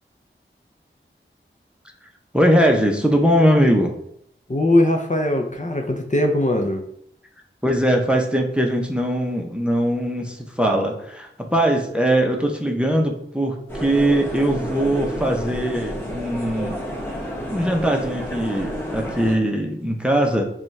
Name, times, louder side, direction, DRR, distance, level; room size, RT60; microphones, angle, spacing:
voice 1, 2.3-3.9 7.6-16.8 17.5-20.4, equal, 5° right, 1 dB, 0.7 m, -20 dB
voice 2, 4.5-6.8, left 1 dB, 35° left, 3 dB, 0.7 m, -20 dB
sound 1, 13.7-19.4, equal, 10° left, 1.5 m, -30 dB
6.8 x 2.4 x 3.2 m, 0.71 s
wide cardioid pair, 55°, 21 cm